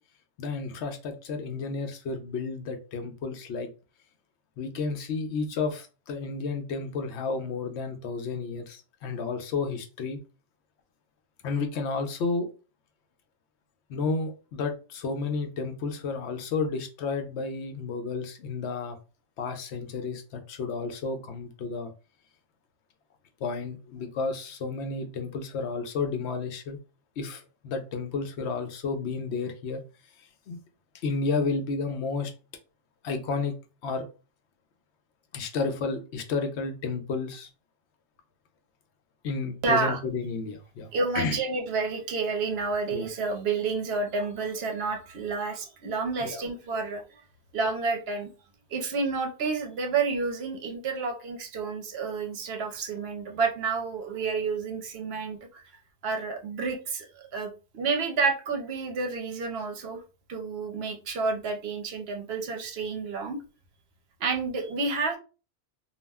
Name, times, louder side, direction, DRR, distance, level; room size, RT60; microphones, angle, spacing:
voice 1, 0.4-3.7 4.6-10.2 11.4-12.5 13.9-19.0 19.4-21.9 23.4-26.8 27.2-29.8 30.5-30.6 31.0-32.3 33.0-33.5 33.8-34.0 35.3-37.5 39.2-41.4 42.9-43.1 46.2-46.4, left 4 dB, 85° left, 0.9 m, -31 dB
voice 2, 39.6-40.0 40.9-47.0 47.5-48.3 48.7-55.6 56.0-60.0 60.3-63.4 64.2-65.2, right 4 dB, 70° right, 0.8 m, -30 dB
2.4 x 2.1 x 3.3 m
omnidirectional pair, 1.1 m